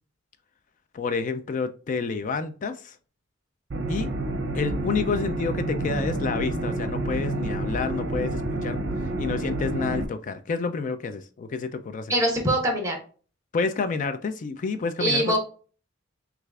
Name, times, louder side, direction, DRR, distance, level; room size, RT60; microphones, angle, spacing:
voice 1, 0.9-3.0 3.9-4.1 4.5-8.8 9.2-12.2 13.5-15.4, left 4 dB, 40° left, 0.4 m, -29 dB
sound 1, 3.7-10.0, right 2 dB, 60° right, 0.7 m, -29 dB
voice 2, 12.1-13.0 15.0-15.4, right 1 dB, 15° right, 1.2 m, -23 dB
6.3 x 2.5 x 2.3 m
head